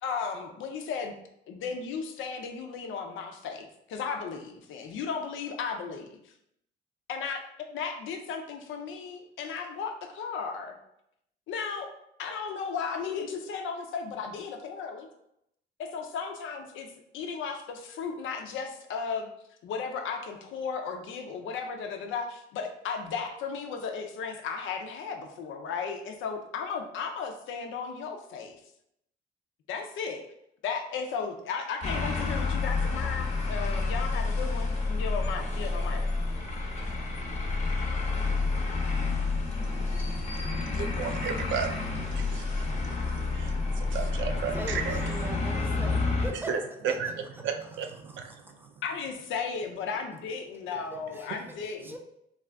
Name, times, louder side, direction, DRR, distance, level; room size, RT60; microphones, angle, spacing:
voice 1, 0.0-1.1 1.5-6.2 7.1-7.4 7.7-10.8 11.5-11.9 12.2-15.1 15.8-19.3 19.6-28.6 29.7-30.2 30.6-36.1 48.8-52.0, left 5 dB, 80° left, 5 dB, 0.5 m, -35 dB
sound 1, 31.8-46.3, left 3 dB, 35° left, 0.7 m, -29 dB
voice 2, 39.6-45.5 46.3-48.7, right 6 dB, 70° right, 5 dB, 0.4 m, -35 dB
voice 3, 44.5-46.6 46.9-47.0 48.0-48.8 50.9-52.0, right 1 dB, 10° right, 3 dB, 0.4 m, -41 dB
2.4 x 2.3 x 3.3 m, 0.77 s
cardioid pair, 90°, 20 cm